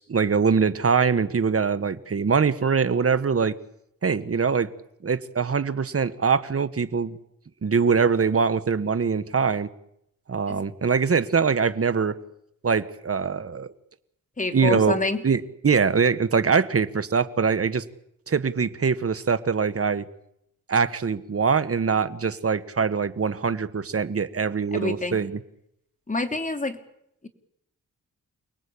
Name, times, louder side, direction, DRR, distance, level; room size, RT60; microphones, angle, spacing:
voice 1, 0.0-3.6 4.0-4.7 5.0-7.2 7.6-9.7 10.3-12.2 12.6-13.7 14.5-15.0 15.2-17.8 18.3-20.0 20.7-25.4, right 5 dB, 45° right, 13 dB, 1.7 m, -23 dB
voice 2, 14.4-15.2 24.7-25.2 26.1-26.8, left 2 dB, 25° left, 6 dB, 3.2 m, -27 dB
29.0 x 20.5 x 8.7 m, 0.76 s
wide cardioid pair, 105°, 33 cm